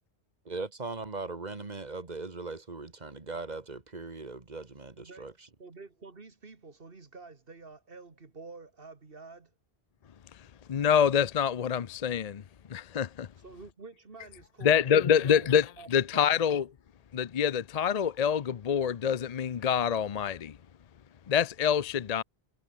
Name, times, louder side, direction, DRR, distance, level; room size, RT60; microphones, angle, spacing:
voice 1, 0.5-5.3, right 3 dB, 45° right, 1.9 m, -39 dB
voice 2, 5.0-5.3 5.6-9.5 13.4-16.3, right 3 dB, 60° right, 2.3 m, -49 dB
voice 3, 10.7-12.4 12.7-13.3 14.6-15.7 15.9-16.6 17.1-20.6 21.3-22.2, left 8 dB, 45° left, 0.6 m, -26 dB
omnidirectional pair, 1.0 m